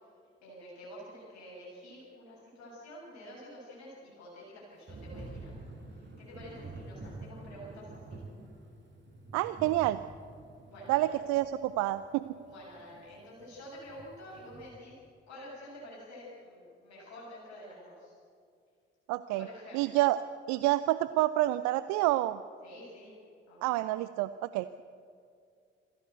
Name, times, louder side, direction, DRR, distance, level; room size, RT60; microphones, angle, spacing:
voice 1, 0.4-8.2 10.7-11.1 12.4-15.0 15.3-18.1 19.3-20.1 22.6-23.1 23.5-23.7, equal, 60° left, -6 dB, 7.1 m, -49 dB
Thunder / Rain, 4.9-14.7, right 2 dB, 35° right, 6.6 m, -48 dB
voice 2, 9.3-10.0 10.9-12.3 19.1-19.5 19.7-20.2 20.5-22.4 23.6-24.8, right 16 dB, 60° right, 14 dB, 0.6 m, -28 dB
sound 1, 11.1-14.1, left 2 dB, ahead, 3.6 m, -52 dB
25.5 x 15.0 x 8.1 m, 2.3 s
figure-of-eight pair, 45°, 32 cm